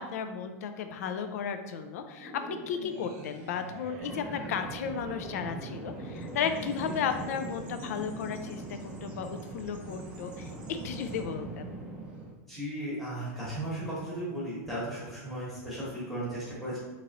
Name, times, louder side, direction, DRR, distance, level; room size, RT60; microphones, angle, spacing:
voice 1, 0.0-11.7, left 7 dB, 75° left, 8 dB, 0.4 m, -34 dB
sound 1, 2.2-6.7, right 2 dB, 70° right, 0.7 m, -46 dB
Bird vocalization bird call bird song, 4.0-12.3, right 2 dB, 15° right, 0.5 m, -41 dB
voice 2, 12.5-16.8, right 1 dB, ahead, -10 dB, 1.1 m, -35 dB
3.7 x 3.0 x 2.9 m, 1.1 s
supercardioid pair, 175°, 8 cm